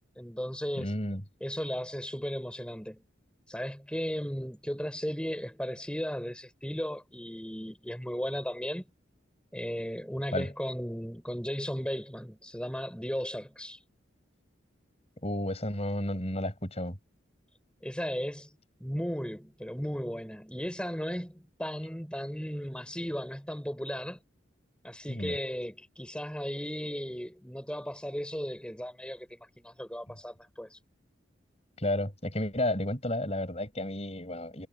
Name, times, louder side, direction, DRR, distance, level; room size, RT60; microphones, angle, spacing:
voice 1, 0.2-0.9 1.4-3.0 3.5-8.8 9.5-13.8 17.8-18.5 18.8-24.2 24.8-30.8, equal, 5° left, 5.1 m, -36 dB
voice 2, 0.8-1.2 10.3-10.5 15.2-17.0 25.1-25.4 31.8-34.7, left 1 dB, 35° left, 6.3 m, -32 dB
head